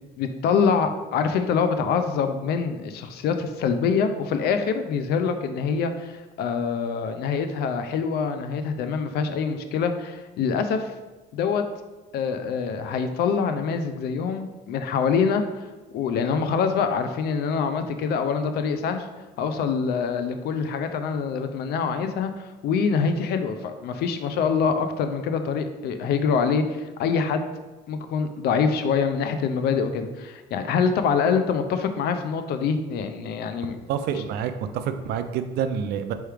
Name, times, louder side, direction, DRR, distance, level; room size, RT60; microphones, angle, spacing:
voice 1, 0.2-10.9 11.3-11.6 12.1-15.4 15.9-19.1 19.4-27.5 27.9-33.8, left 6 dB, 75° left, 8 dB, 0.5 m, -25 dB
voice 2, 33.9-36.1, right 8 dB, 75° right, 9 dB, 0.4 m, -27 dB
4.6 x 3.1 x 3.3 m, 1.2 s
cardioid pair, 110°, 17 cm